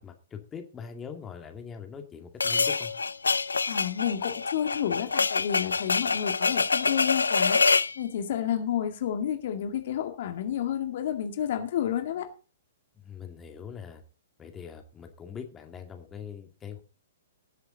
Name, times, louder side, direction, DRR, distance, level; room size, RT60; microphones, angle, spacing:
voice 1, 0.0-2.9 12.9-14.0 14.4-16.8, left 7 dB, 20° left, 5 dB, 2.1 m, -42 dB
sound 1, 2.4-8.0, left 4 dB, 80° left, 0.5 m, -26 dB
voice 2, 3.7-12.3, left 10 dB, 55° left, 7 dB, 2.0 m, -30 dB
19.0 x 7.9 x 3.9 m, 0.34 s
figure-of-eight pair, 120°, 0 cm